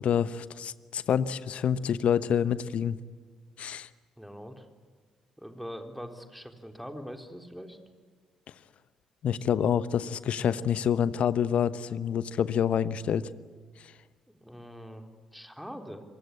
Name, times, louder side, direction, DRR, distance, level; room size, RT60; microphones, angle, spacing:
voice 1, 0.0-3.0 3.6-3.9 9.2-13.3, left 8 dB, 55° left, 16 dB, 1.0 m, -27 dB
voice 2, 4.2-4.7 5.4-7.8 14.4-16.0, equal, ahead, 5 dB, 3.7 m, -43 dB
28.0 x 23.5 x 8.6 m, 1.5 s
figure-of-eight pair, 45°, 3 cm